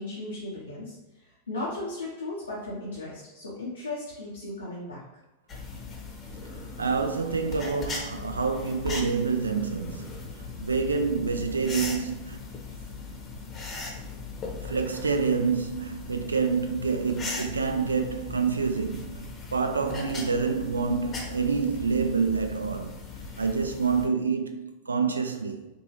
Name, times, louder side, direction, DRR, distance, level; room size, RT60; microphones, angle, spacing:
voice 1, 0.0-5.0, left 2 dB, 80° left, 0.9 m, -36 dB
sound 1, 5.5-24.1, left 3 dB, 25° left, 0.9 m, -39 dB
voice 2, 6.8-10.1 10.6-12.4 14.6-23.0 23.4-25.7, right 5 dB, 75° right, 0.4 m, -27 dB
4.5 x 2.7 x 3.0 m
figure-of-eight pair, 90°, 0 cm